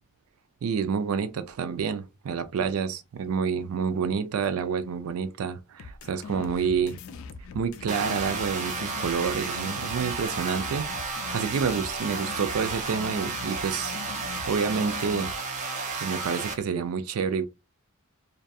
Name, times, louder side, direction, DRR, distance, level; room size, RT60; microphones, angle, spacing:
voice 1, 0.6-7.0 7.5-13.9 14.5-15.3 16.0-17.5, right 6 dB, 85° right, 0.4 m, -28 dB
sound 1, 5.8-15.3, left 5 dB, 75° left, 0.3 m, -41 dB
sound 2, 7.9-16.5, right 4 dB, 35° right, 0.5 m, -32 dB
2.6 x 2.3 x 2.3 m
head